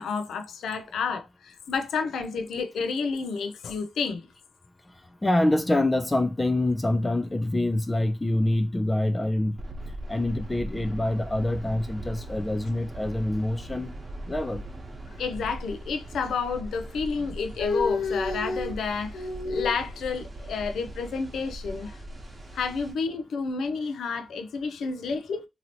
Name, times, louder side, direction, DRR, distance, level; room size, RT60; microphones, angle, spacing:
voice 1, 0.0-4.3 15.2-22.0 22.5-25.5, left 4 dB, 90° left, 0.4 m, -30 dB
voice 2, 5.2-9.6 10.1-13.9 14.3-14.6, left 1 dB, 20° left, 0.4 m, -25 dB
sound 1, 9.6-22.9, right 1 dB, 35° right, 1.0 m, -40 dB
2.9 x 2.7 x 2.8 m
cardioid pair, 80°, 0 cm